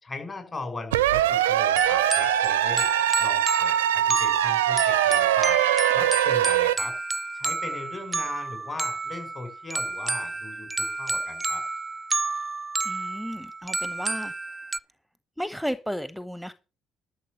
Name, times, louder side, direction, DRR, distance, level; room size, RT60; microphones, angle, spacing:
voice 1, 0.0-2.9 3.2-5.6 5.9-7.0 7.3-11.6, left 3 dB, 35° left, 6 dB, 6.2 m, -39 dB
sound 1, 0.9-6.8, right 12 dB, 85° right, 0.5 m, -22 dB
sound 2, 1.8-14.8, right 3 dB, 25° right, 0.6 m, -30 dB
voice 2, 12.8-14.3 15.4-16.5, equal, ahead, 14 dB, 0.9 m, -33 dB
12.5 x 6.9 x 6.5 m, 0.33 s
hypercardioid pair, 50°, 0 cm